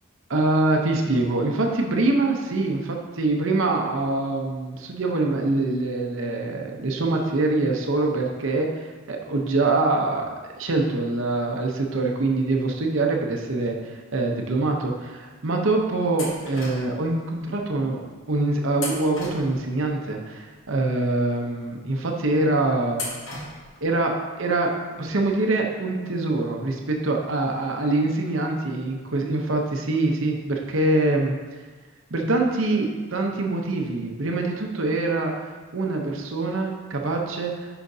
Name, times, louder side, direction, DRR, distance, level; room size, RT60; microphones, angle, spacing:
voice 1, 0.3-10.2 10.6-18.0 18.3-23.1 23.8-31.3 32.1-35.3 35.7-37.7, right 2 dB, 65° right, 1 dB, 0.8 m, -24 dB
sound 1, 16.2-17.1 18.7-19.9 22.9-23.8, left 2 dB, 65° left, 1.3 m, -35 dB
10.0 x 5.0 x 2.7 m, 1.3 s
head